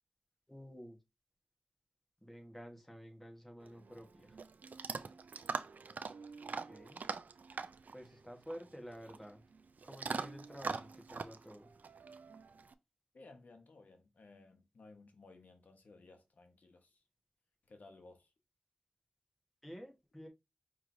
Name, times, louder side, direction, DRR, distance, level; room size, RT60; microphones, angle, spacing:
voice 1, 0.5-1.0 2.2-4.4 6.4-7.0 7.9-9.4 9.8-11.7 19.6-20.3, equal, 10° left, 1.2 m, -51 dB
Chewing mastication / Dog, 3.6-12.7, right 4 dB, 85° right, 0.3 m, -44 dB
voice 2, 13.1-17.0 17.7-18.3, left 3 dB, 85° left, 0.8 m, -58 dB
5.5 x 3.1 x 2.6 m
wide cardioid pair, 70°, 3 cm